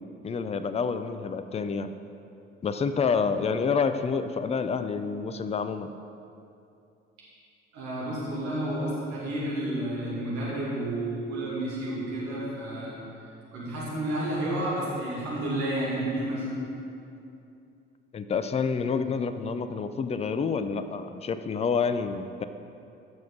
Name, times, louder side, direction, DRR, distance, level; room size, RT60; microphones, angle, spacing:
voice 1, 0.0-1.9 2.6-5.9 18.1-22.4, left 5 dB, 20° left, 10 dB, 0.5 m, -28 dB
voice 2, 7.7-12.9 13.5-16.6, right 1 dB, 60° right, -6 dB, 2.6 m, -31 dB
15.5 x 6.5 x 4.2 m, 2.6 s
figure-of-eight pair, 55°, 33 cm